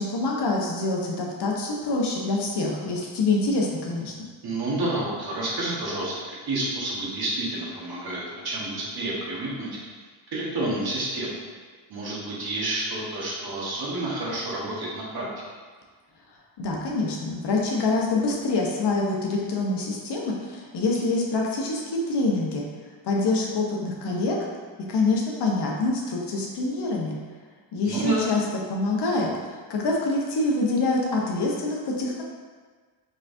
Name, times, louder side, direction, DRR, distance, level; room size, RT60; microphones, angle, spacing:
voice 1, 0.0-4.1 16.6-22.6 23.0-24.4 24.9-27.2 27.7-28.4 28.7-29.3 29.7-32.2, left 3 dB, 55° left, -2 dB, 0.9 m, -25 dB
voice 2, 4.4-6.1 6.4-9.7 10.3-11.4 11.9-15.3 27.8-28.2, right 2 dB, 50° right, -5 dB, 1.3 m, -29 dB
4.1 x 3.2 x 2.6 m, 1.5 s
supercardioid pair, 65°, 48 cm